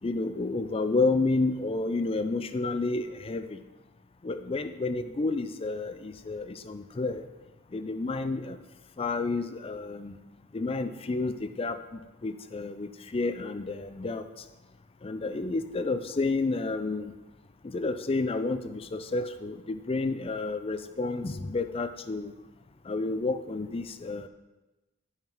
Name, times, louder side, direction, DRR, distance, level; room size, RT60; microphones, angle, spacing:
voice 1, 0.0-3.6 4.2-7.3 7.7-8.6 9.0-10.2 10.5-14.2 15.0-17.1 17.6-22.3 22.9-24.3, left 3 dB, 30° left, 10 dB, 0.4 m, -30 dB
10.5 x 5.7 x 4.5 m, 1.1 s
head